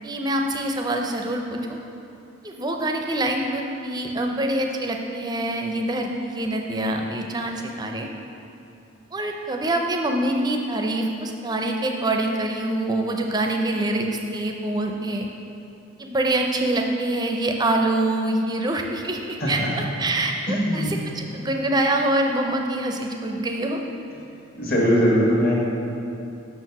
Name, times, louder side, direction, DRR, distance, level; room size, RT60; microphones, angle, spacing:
voice 1, 0.0-1.6 2.4-8.1 9.1-15.3 16.0-19.2 19.5-23.8, right 1 dB, 20° right, 2 dB, 0.5 m, -25 dB
voice 2, 20.5-20.9 24.6-25.5, equal, 45° left, -4 dB, 1.4 m, -20 dB
6.0 x 4.6 x 5.9 m, 2.8 s
head